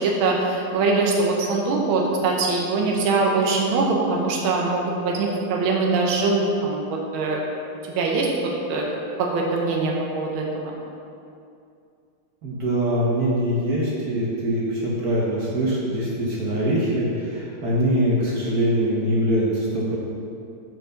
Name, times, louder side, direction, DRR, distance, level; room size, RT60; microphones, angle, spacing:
voice 1, 0.0-6.8 7.1-7.4 8.0-8.3 8.7-8.8 9.2-10.7, right 3 dB, 75° right, -1 dB, 1.7 m, -22 dB
voice 2, 12.4-20.0, equal, 55° right, -4 dB, 1.2 m, -23 dB
6.4 x 4.6 x 5.2 m, 2.5 s
omnidirectional pair, 2.3 m